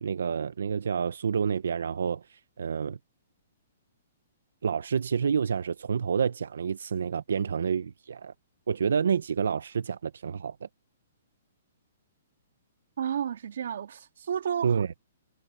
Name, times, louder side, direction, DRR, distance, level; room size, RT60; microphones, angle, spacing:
voice 1, 0.0-3.0 4.6-8.3 8.7-10.7 14.6-14.9, right 6 dB, 90° right, 0.6 m, -28 dB
voice 2, 13.0-14.8, right 8 dB, 60° right, 2.2 m, -31 dB
hypercardioid pair, 180°, 0 cm